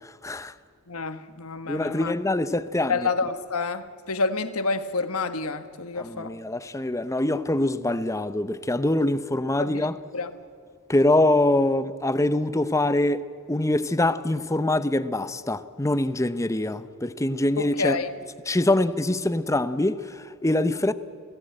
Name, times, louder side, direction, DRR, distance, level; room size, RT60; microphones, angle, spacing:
voice 1, 0.0-0.5 1.7-3.1 6.0-10.0 10.9-18.0 18.5-20.9, left 1 dB, 15° left, 0.7 m, -24 dB
voice 2, 0.9-2.1 2.9-6.3 9.6-10.3 17.6-18.1, left 4 dB, 75° left, 1.2 m, -29 dB
30.0 x 17.0 x 8.9 m
head